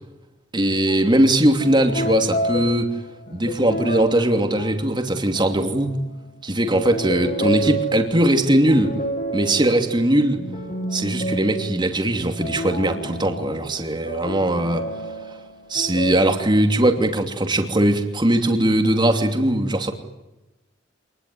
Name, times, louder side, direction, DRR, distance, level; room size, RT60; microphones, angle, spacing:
voice 1, 0.5-2.9 3.3-6.0 6.4-8.9 9.3-10.4 10.9-14.8 15.7-19.9, right 1 dB, 25° right, 5 dB, 2.8 m, -20 dB
sound 1, 0.9-1.1 1.6-6.2 6.6-16.3, right 1 dB, 45° left, 7.2 m, -30 dB
26.5 x 20.5 x 9.6 m, 1.0 s
head